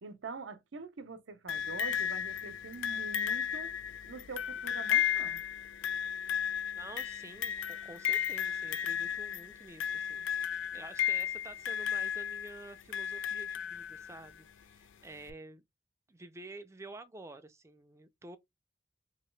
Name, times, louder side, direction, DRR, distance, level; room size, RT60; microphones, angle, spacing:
voice 1, 0.0-3.7 4.1-5.4, right 4 dB, 85° right, 0.7 m, -45 dB
sound 1, 1.5-14.3 15.3-15.4, left 9 dB, 90° left, 0.4 m, -34 dB
voice 2, 6.7-15.6 16.1-18.4, right 2 dB, 15° right, 0.4 m, -50 dB
3.0 x 2.8 x 3.1 m
head